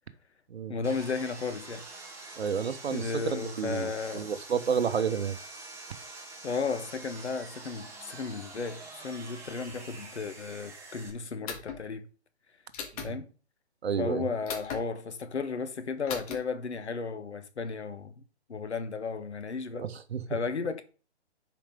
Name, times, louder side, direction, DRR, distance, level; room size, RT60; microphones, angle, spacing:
voice 1, 0.7-1.8 2.9-4.3 6.4-12.1 13.0-13.3 14.0-18.2 18.5-19.9 20.3-20.8, left 5 dB, 80° left, 1.2 m, -34 dB
Sawing, 0.8-11.1, right 3 dB, 10° right, 1.1 m, -46 dB
voice 2, 2.4-5.4 13.0-13.2 13.8-14.3 19.8-20.2, right 7 dB, 70° right, 1.0 m, -31 dB
sound 1, 11.5-11.8 12.7-13.1 14.5-14.8 16.1-16.4, left 6 dB, 35° left, 1.8 m, -37 dB
10.5 x 4.9 x 3.6 m
hypercardioid pair, 140°, 33 cm